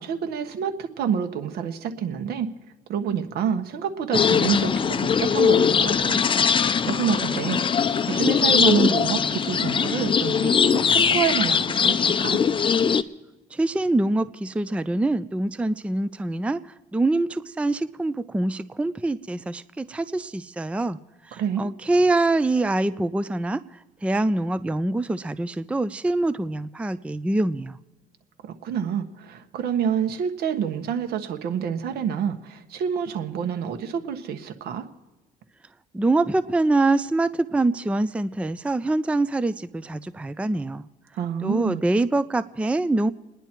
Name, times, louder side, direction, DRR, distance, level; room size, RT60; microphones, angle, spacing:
voice 1, 0.0-2.5 2.9-4.7 5.0-6.2 6.9-7.6 8.1-12.4 21.3-21.7 28.6-34.9 41.2-41.8, right 7 dB, 70° right, 6 dB, 1.4 m, -27 dB
sound 1, 4.1-13.0, left 6 dB, 30° left, 0.7 m, -21 dB
voice 2, 13.5-16.6 16.9-21.0 21.3-23.6 24.0-27.8 35.9-40.8 41.4-43.1, right 2 dB, 5° right, 14 dB, 0.4 m, -24 dB
29.5 x 10.5 x 4.5 m, 1.1 s
cardioid pair, 110°, 17 cm